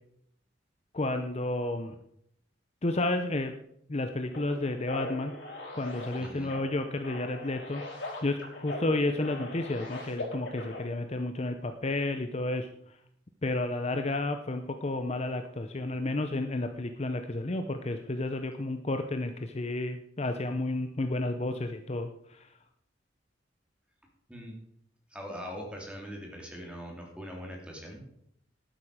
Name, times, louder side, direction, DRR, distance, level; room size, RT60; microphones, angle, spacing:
voice 1, 0.9-1.9 2.8-3.5 3.9-5.3 5.7-12.7 13.4-22.1 22.4-22.5, left 2 dB, 35° left, 7 dB, 0.7 m, -31 dB
sound 1, 4.3-10.8, left 2 dB, 85° left, 4.4 m, -41 dB
voice 2, 6.2-6.5 24.3-24.5 25.1-28.0, equal, 5° right, 0 dB, 3.0 m, -41 dB
11.5 x 9.2 x 5.0 m, 0.72 s
head